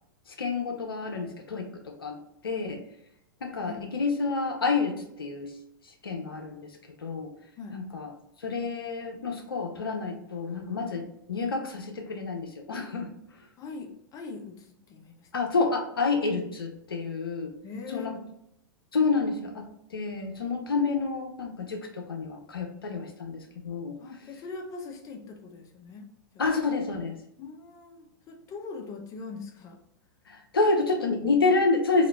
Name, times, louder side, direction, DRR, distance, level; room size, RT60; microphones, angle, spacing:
voice 1, 0.3-2.2 2.4-2.8 3.4-5.5 6.0-7.3 7.7-8.1 8.4-13.1 15.3-17.5 17.9-18.1 18.9-24.0 26.4-27.2 30.3-32.1, left 4 dB, 80° left, 3 dB, 0.6 m, -29 dB
voice 2, 13.6-15.4 17.6-18.2 24.0-26.1 26.3-26.4 27.4-29.8, left 4 dB, 30° left, 3 dB, 0.6 m, -41 dB
2.8 x 2.4 x 3.2 m, 0.78 s
figure-of-eight pair, 100°, 12 cm